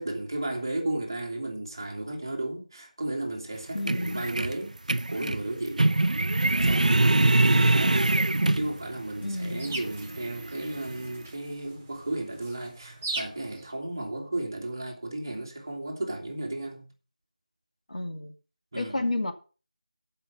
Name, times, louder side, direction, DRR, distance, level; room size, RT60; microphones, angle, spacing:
voice 1, 0.0-6.0 6.3-8.0 8.5-16.9 18.7-19.0, right 2 dB, 30° right, 2.3 m, -34 dB
sound 1, 3.5-9.0 9.5-11.1, right 2 dB, 75° right, 0.6 m, -24 dB
voice 2, 3.7-4.2 7.2-7.4 9.2-9.7 17.9-18.3 18.7-19.3, left 1 dB, 70° left, 2.5 m, -31 dB
sound 2, 8.5-13.7, right 2 dB, 15° right, 0.8 m, -41 dB
14.0 x 5.8 x 5.4 m
figure-of-eight pair, 180°, 4 cm